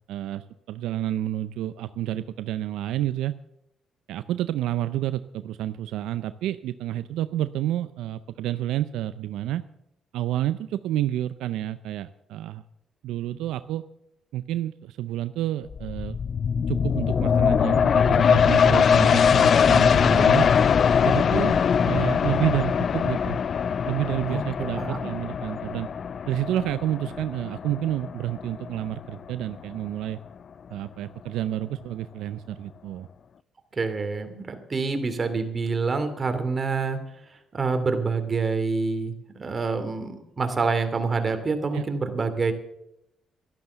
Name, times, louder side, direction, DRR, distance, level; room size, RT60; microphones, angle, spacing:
voice 1, 0.0-3.4 4.1-9.6 10.1-12.6 13.0-13.8 14.3-16.2 16.7-20.5 21.0-23.4 23.9-25.9 26.3-30.2 30.7-33.1 41.7-41.8, right 13 dB, 85° right, 13 dB, 0.5 m, -29 dB
sound 1, 15.7-29.0 29.4-29.5, left 7 dB, 55° left, 0.4 m, -22 dB
voice 2, 24.8-25.1 33.7-37.0 37.5-42.5, right 4 dB, 35° right, 7 dB, 2.5 m, -27 dB
12.5 x 12.0 x 6.8 m, 0.82 s
cardioid pair, 75°, 0 cm